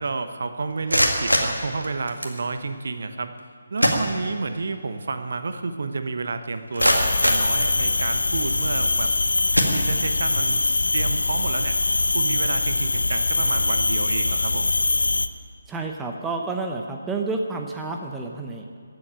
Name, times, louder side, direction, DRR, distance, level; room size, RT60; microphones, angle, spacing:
voice 1, 0.0-3.3 3.7-9.1 9.7-10.6 10.9-11.8 12.1-14.7, right 3 dB, 55° right, 9 dB, 1.0 m, -30 dB
sound 1, 0.7-2.4 3.4-3.5 3.8-4.7 5.0-5.1 5.7-5.8 6.3-8.2 8.9-9.1 9.5-10.4, equal, 90° right, 2.0 m, -24 dB
sound 2, 6.8-15.3, left 3 dB, 65° left, 0.6 m, -23 dB
voice 2, 15.7-18.8, right 3 dB, 10° right, 2 dB, 0.8 m, -30 dB
15.5 x 8.1 x 8.9 m, 2.2 s
figure-of-eight pair, 145°, 0 cm